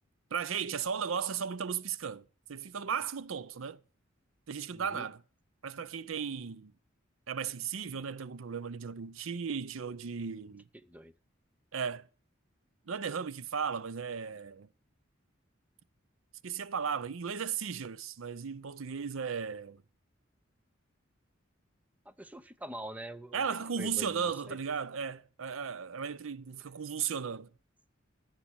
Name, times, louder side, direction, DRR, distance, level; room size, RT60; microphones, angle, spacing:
voice 1, 0.3-3.8 4.5-5.2 5.6-6.7 7.3-10.6 11.7-12.0 12.9-14.7 16.4-19.8 23.3-27.5, right 6 dB, 85° right, 0.6 m, -36 dB
voice 2, 4.7-5.1 10.7-11.1 22.1-24.6, right 1 dB, 10° right, 0.6 m, -45 dB
14.5 x 7.5 x 8.8 m
head